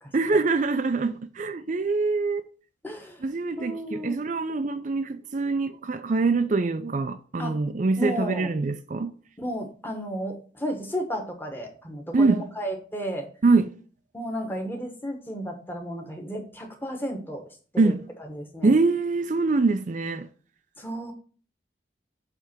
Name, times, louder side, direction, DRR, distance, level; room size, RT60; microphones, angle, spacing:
voice 1, 0.1-2.4 3.2-9.1 12.1-12.5 13.4-13.7 17.8-18.0 18.6-20.3, right 3 dB, 40° right, 0.4 m, -24 dB
voice 2, 2.8-3.2 3.6-4.2 7.4-7.6 8.0-8.5 9.4-13.3 14.1-17.4 17.7-17.9 18.3-18.7 20.8-21.1, equal, 10° left, 1.3 m, -33 dB
8.2 x 3.4 x 6.0 m
head